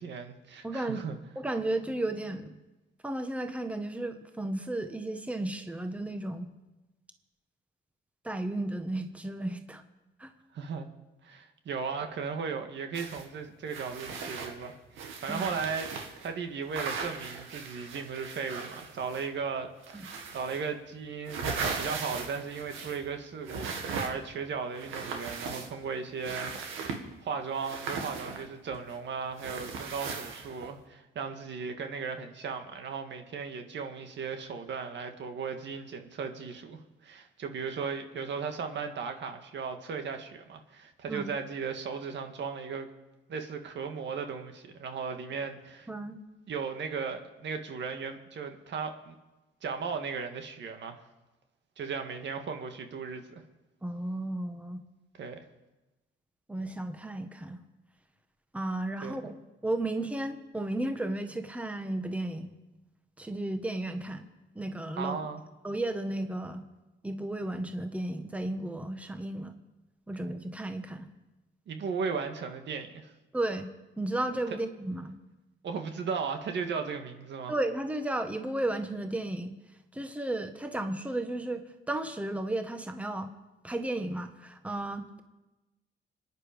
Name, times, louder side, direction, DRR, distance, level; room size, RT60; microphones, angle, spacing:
voice 1, 0.0-1.2 10.5-10.9 11.2-15.9 16.2-26.5 26.8-42.9 43.3-45.9 46.5-49.1 49.6-51.0 51.8-53.4 55.2-55.4 59.0-59.3 65.0-65.4 71.7-73.1 75.6-77.5, right 5 dB, 65° right, 6 dB, 1.9 m, -36 dB
voice 2, 0.6-1.0 1.3-2.6 3.0-6.5 8.2-9.8 10.2-10.3 15.3-15.4 19.9-20.0 41.1-41.2 45.9-46.2 53.8-54.8 56.5-57.6 58.5-59.4 59.6-62.5 63.2-64.3 64.5-65.2 65.6-66.6 67.0-69.5 70.1-71.1 73.3-73.7 74.0-75.2 77.5-79.5 79.9-83.3 83.6-85.2, right 1 dB, 5° right, 7 dB, 1.4 m, -33 dB
sound 1, 12.9-13.3 13.7-16.3 16.7-19.4 19.8-20.7 21.0-23.1 23.5-24.4 24.7-25.9 26.2-27.1 27.6-29.0 29.4-30.7, right 5 dB, 90° right, 2.2 m, -38 dB
26.0 x 10.0 x 5.3 m, 1.1 s
cardioid pair, 90°, 20 cm